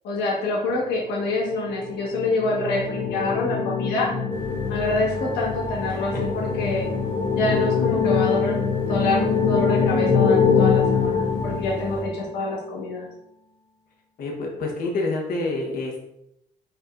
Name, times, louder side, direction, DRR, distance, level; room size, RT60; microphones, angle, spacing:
voice 1, 0.0-4.1 4.7-6.9 7.3-13.1, left 2 dB, 80° left, -4 dB, 1.6 m, -26 dB
sound 1, 1.6-12.3, left 6 dB, 30° left, 0.5 m, -23 dB
sound 2, 4.3-12.0, left 1 dB, 45° right, 1.7 m, -35 dB
voice 2, 5.9-6.2 14.2-16.0, left 2 dB, 60° left, 0 dB, 1.3 m, -28 dB
4.8 x 4.0 x 2.6 m, 0.80 s
cardioid pair, 110°, 17 cm